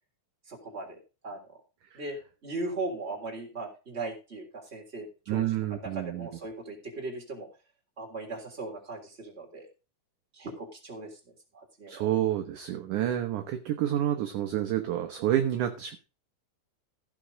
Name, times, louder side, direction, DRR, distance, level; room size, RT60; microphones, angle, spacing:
voice 1, 0.5-1.0 1.2-1.4 1.9-2.2 2.4-7.5 8.0-9.7 10.3-11.2 11.5-12.1, right 2 dB, 15° right, 0 dB, 3.2 m, -38 dB
voice 2, 5.3-6.3 11.9-16.0, right 11 dB, 70° right, 6 dB, 2.0 m, -29 dB
15.5 x 6.1 x 5.2 m, 0.32 s
omnidirectional pair, 4.6 m